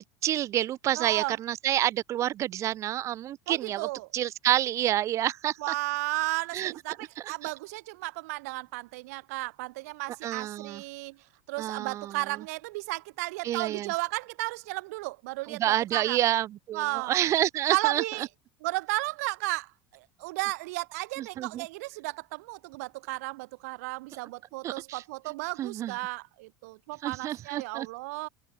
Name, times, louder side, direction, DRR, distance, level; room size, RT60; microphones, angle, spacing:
voice 1, 0.2-3.9 4.1-5.7 6.5-6.7 7.2-7.5 10.2-10.8 11.6-12.2 13.4-13.9 15.5-18.0 21.2-21.7 24.6-25.0 25.6-25.9 27.0-27.9, right 13 dB, 40° right, 2.8 m, -28 dB
voice 2, 1.0-1.4 3.5-4.1 5.6-11.2 11.5-16.2 16.7-17.1 17.7-18.3 18.6-28.3, right 23 dB, 85° right, 5.8 m, -34 dB
cardioid pair, 155°, 8 cm